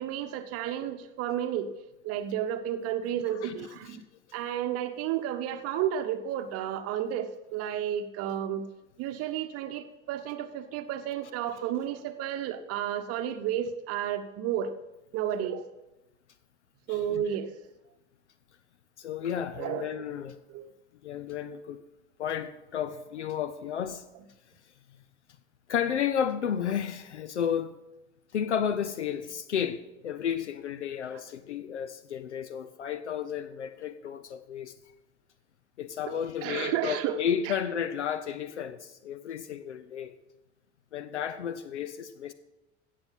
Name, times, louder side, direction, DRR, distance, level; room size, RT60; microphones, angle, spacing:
voice 1, 0.0-1.7 2.0-4.0 4.3-8.7 9.0-14.7 15.1-15.7 16.9-17.6 19.6-20.0 20.5-20.7 36.4-37.2 37.4-37.6, right 10 dB, 45° right, 0.9 m, -32 dB
voice 2, 3.3-4.0 16.9-17.2 19.0-20.4 21.0-21.8 22.2-24.0 25.7-27.7 28.3-34.7 35.8-40.1 40.9-42.3, left 8 dB, 75° left, 0.6 m, -32 dB
16.5 x 6.5 x 5.6 m
figure-of-eight pair, 75°, 35 cm